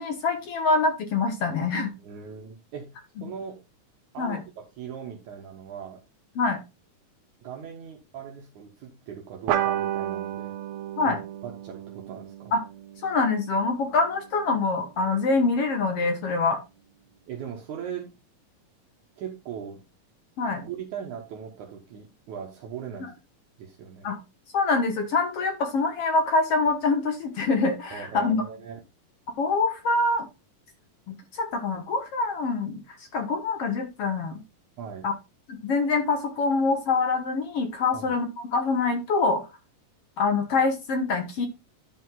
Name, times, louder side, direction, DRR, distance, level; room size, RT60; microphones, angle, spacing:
voice 1, 0.0-1.9 4.2-4.4 6.4-6.6 11.0-11.2 12.5-12.6 13.0-16.6 20.4-20.6 24.0-24.2 24.5-28.4 29.4-30.3 31.1-32.8 33.1-34.4 35.0-35.1 35.5-39.4 40.2-41.5, left 3 dB, 60° left, 6 dB, 1.6 m, -25 dB
voice 2, 2.0-2.9 3.2-3.6 4.1-6.0 7.4-10.6 11.0-11.2 11.4-12.5 17.3-18.1 19.2-19.8 20.5-23.1 23.6-24.1 27.9-28.8 34.8-35.1 37.9-38.1, right 7 dB, 65° right, 1 dB, 2.3 m, -39 dB
sound 1, 9.5-14.4, right 11 dB, 80° right, 1.5 m, -32 dB
10.5 x 5.2 x 3.8 m, 0.26 s
omnidirectional pair, 4.0 m